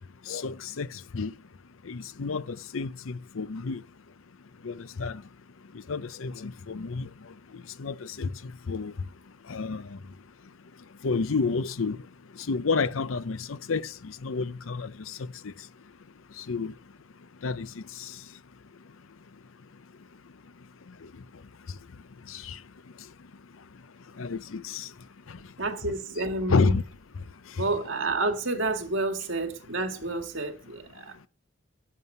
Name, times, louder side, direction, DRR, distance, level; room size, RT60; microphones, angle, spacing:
voice 1, 0.3-1.3 1.9-3.8 4.6-5.2 5.9-7.1 7.8-8.3 8.7-8.9 9.5-9.8 11.0-12.0 12.5-15.5 16.5-16.7 17.4-18.1 22.3-22.6 24.2-24.9 26.5-26.8, left 4 dB, 75° left, 0.6 m, -30 dB
voice 2, 25.6-26.8 27.6-31.3, right 2 dB, 65° right, 2.1 m, -30 dB
11.0 x 7.6 x 6.7 m
head